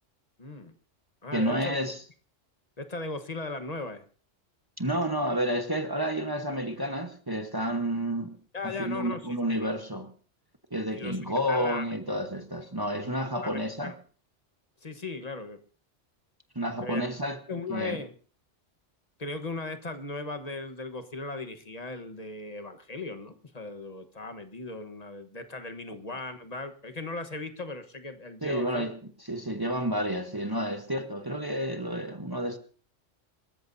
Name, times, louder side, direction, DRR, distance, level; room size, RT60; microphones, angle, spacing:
voice 1, 0.4-0.7 1.2-1.8 2.8-4.0 8.5-9.3 9.6-9.7 11.0-11.2 11.5-11.9 13.4-13.9 14.8-15.6 16.8-17.0 17.5-18.1 19.2-28.9, left 3 dB, 35° left, 1.3 m, -37 dB
voice 2, 1.3-2.0 4.8-8.4 8.6-10.1 10.7-13.9 16.5-17.4 17.7-18.0 28.4-32.6, equal, 20° right, 1.1 m, -30 dB
26.5 x 14.0 x 2.7 m
omnidirectional pair, 1.2 m